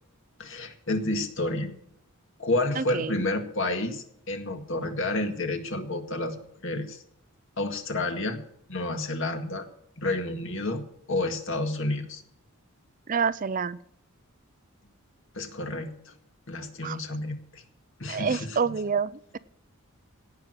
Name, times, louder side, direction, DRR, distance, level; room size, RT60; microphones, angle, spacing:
voice 1, 0.4-1.8 2.4-7.0 7.6-8.4 8.7-9.7 10.0-10.8 11.1-12.2 15.3-16.1 16.5-17.6 18.0-18.8, left 2 dB, 60° left, 6 dB, 2.0 m, -30 dB
voice 2, 2.8-3.1 13.1-13.8 16.8-17.0 18.1-19.4, right 6 dB, 35° right, 16 dB, 0.5 m, -27 dB
17.5 x 6.3 x 7.7 m, 0.75 s
head